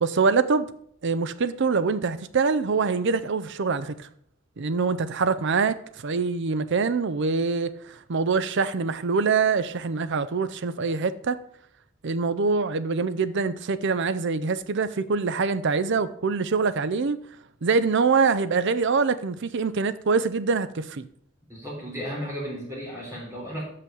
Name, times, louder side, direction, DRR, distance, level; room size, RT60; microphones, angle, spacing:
voice 1, 0.0-0.7 1.0-4.1 4.6-11.4 12.0-17.2 17.6-21.0, right 4 dB, 60° right, 0.5 m, -24 dB
voice 2, 21.5-23.6, equal, 15° right, 3.9 m, -34 dB
6.3 x 5.8 x 6.9 m
head